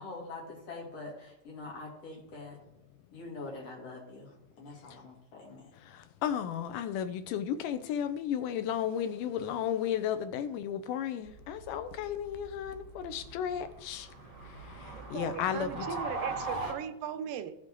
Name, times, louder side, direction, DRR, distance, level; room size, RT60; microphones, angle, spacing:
voice 1, 0.0-2.6 3.1-5.7, left 3 dB, 50° left, 3.2 m, -44 dB
voice 2, 5.9-14.1 14.7-15.9, left 9 dB, 80° left, 2.2 m, -34 dB
sound 1, 11.3-16.7, right 2 dB, 35° right, 2.1 m, -41 dB
voice 3, 15.1-17.6, right 9 dB, 85° right, 2.4 m, -38 dB
14.5 x 6.4 x 3.7 m
omnidirectional pair, 3.8 m